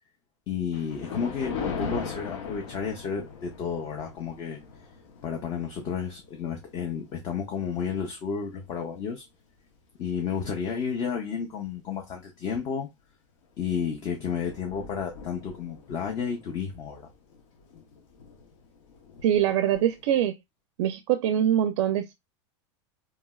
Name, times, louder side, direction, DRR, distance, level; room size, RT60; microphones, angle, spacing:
voice 1, 0.5-4.6 5.2-9.2 10.0-12.9 13.6-17.1, left 7 dB, 25° left, 0.5 m, -32 dB
Thunder, 0.7-9.3 9.8-10.0 10.7-10.8 11.2-11.3 13.4-13.7 14.0-14.1 14.2-20.2, left 5 dB, 90° left, 0.9 m, -41 dB
voice 2, 19.2-20.4 20.8-22.1, right 10 dB, 70° right, 0.4 m, -23 dB
3.1 x 2.8 x 2.2 m
supercardioid pair, 170°, 16 cm